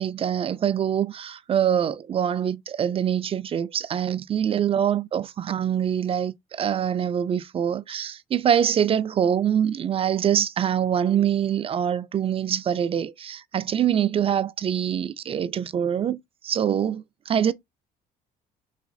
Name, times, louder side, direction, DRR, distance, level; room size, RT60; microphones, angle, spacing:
voice 1, 0.0-17.5, right 9 dB, 35° right, 0.3 m, -24 dB
3.9 x 2.8 x 2.6 m
cardioid pair, 110°, 17 cm